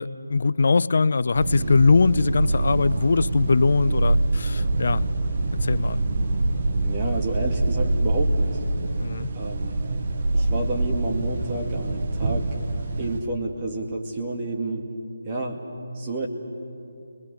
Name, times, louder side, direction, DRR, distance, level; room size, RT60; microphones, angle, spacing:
voice 1, 0.0-5.0 5.6-6.0 9.0-9.3, left 4 dB, 55° left, 18 dB, 0.5 m, -21 dB
sound 1, 1.3-13.2, right 2 dB, 45° right, 1.4 m, -25 dB
voice 2, 6.8-8.6 9.3-9.8 10.3-12.6 13.0-14.9 15.3-15.6 16.0-16.3, right 2 dB, 25° right, 1 dB, 2.1 m, -30 dB
29.5 x 21.0 x 6.7 m, 2.6 s
figure-of-eight pair, 160°, 0 cm